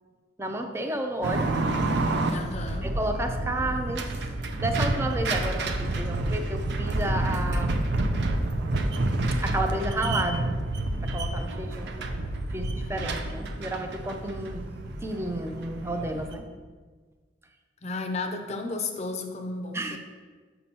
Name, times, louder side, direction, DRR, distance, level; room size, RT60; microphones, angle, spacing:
voice 1, 0.4-1.5 2.1-2.2 2.8-7.8 9.4-10.5 11.0-11.9 12.4-14.7 15.0-16.4 19.7-20.0, right 1 dB, 15° right, 5 dB, 0.5 m, -31 dB
sound 1, 1.2-16.3, right 2 dB, 65° right, 0.5 m, -29 dB
voice 2, 2.3-2.9 17.8-20.0, left 3 dB, 35° left, 4 dB, 0.5 m, -33 dB
6.8 x 5.2 x 2.8 m, 1.4 s
head